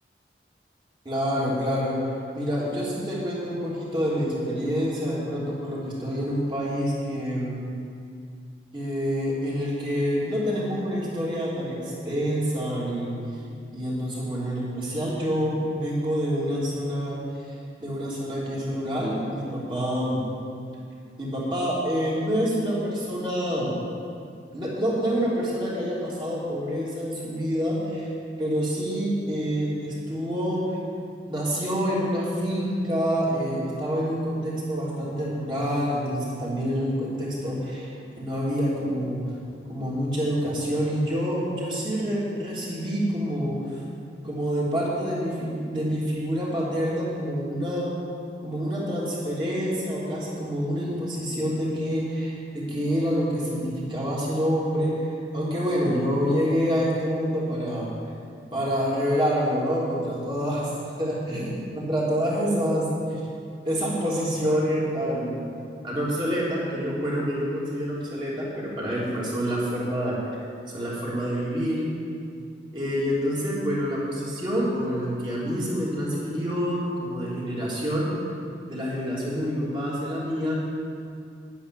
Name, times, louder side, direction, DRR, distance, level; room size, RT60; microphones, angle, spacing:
voice 1, 1.0-2.0 2.3-7.6 8.7-13.1 13.7-17.2 17.8-20.2 21.2-23.8 24.5-28.1 28.4-30.6 31.3-37.9 38.2-39.2 39.7-43.6 44.2-47.9 48.4-57.9 58.5-60.7 61.0-63.2 63.6-65.4 65.8-70.2 70.7-71.9 72.7-78.1 78.7-80.5, equal, 25° right, -6 dB, 3.3 m, -27 dB
10.5 x 10.0 x 7.2 m, 2.3 s
head